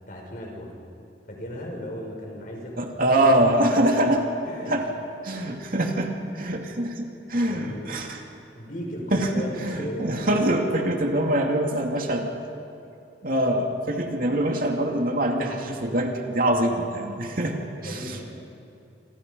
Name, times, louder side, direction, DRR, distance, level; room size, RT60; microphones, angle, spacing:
voice 1, 0.1-0.7 1.3-3.5 4.5-4.7 7.3-7.9 8.5-10.7 17.7-18.2, equal, 50° left, 0 dB, 6.1 m, -36 dB
voice 2, 2.8-4.2 4.7-4.8 5.2-8.2 9.1-12.3 13.2-17.5 17.8-18.0, right 1 dB, 55° right, 2 dB, 2.5 m, -24 dB
27.5 x 27.0 x 5.5 m, 2.7 s
head